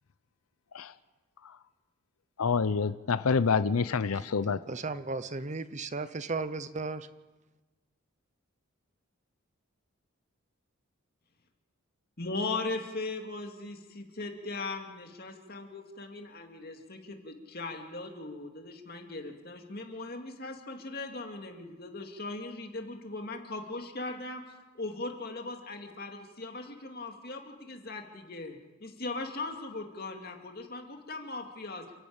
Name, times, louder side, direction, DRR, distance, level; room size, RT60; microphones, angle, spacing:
voice 1, 2.4-4.6, left 5 dB, 85° left, 14 dB, 0.6 m, -27 dB
voice 2, 4.5-7.1, right 3 dB, 35° right, 13 dB, 0.7 m, -35 dB
voice 3, 12.2-24.4 24.7-31.9, left 3 dB, 45° left, 4 dB, 2.6 m, -39 dB
29.0 x 11.5 x 8.9 m, 1.2 s
head